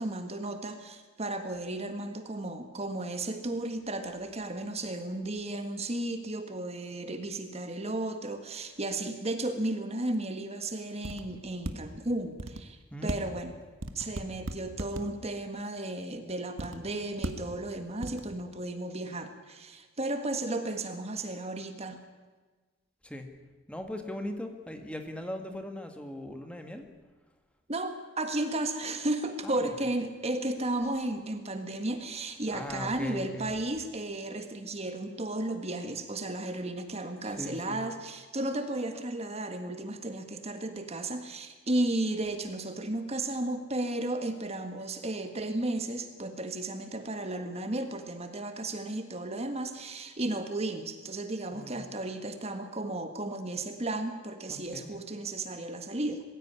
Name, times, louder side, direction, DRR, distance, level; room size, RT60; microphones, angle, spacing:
voice 1, 0.0-13.5 13.9-22.0 27.7-56.2, right 2 dB, 30° right, 8 dB, 1.7 m, -34 dB
sound 1, 11.0-11.2 11.7-11.8 12.4-12.6 13.1-13.2 13.8-15.0 16.6-16.8 17.2-17.3 18.0-18.2, right 1 dB, 80° right, 1.7 m, -34 dB
voice 2, 23.7-26.9 29.4-29.6 32.5-33.5 37.3-37.8 51.5-51.8 54.5-55.0, left 1 dB, 5° left, 5 dB, 1.8 m, -39 dB
22.5 x 16.0 x 9.8 m, 1.3 s
head